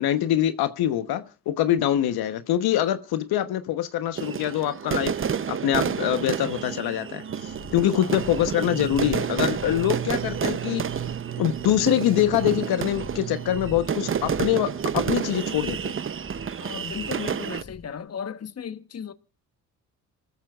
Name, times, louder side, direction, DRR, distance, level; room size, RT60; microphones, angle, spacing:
voice 1, 0.0-5.1 5.5-10.8 11.4-15.9, left 12 dB, 75° left, 1.1 m, -24 dB
sound 1, 4.2-17.6, right 7 dB, 35° right, 0.8 m, -30 dB
sound 2, 7.3-15.0, right 11 dB, 60° right, 1.1 m, -38 dB
sound 3, 7.5-18.0, left 2 dB, 5° left, 3.6 m, -45 dB
voice 2, 16.6-19.1, left 7 dB, 40° left, 1.2 m, -35 dB
28.0 x 14.0 x 2.4 m
supercardioid pair, 70°, 37 cm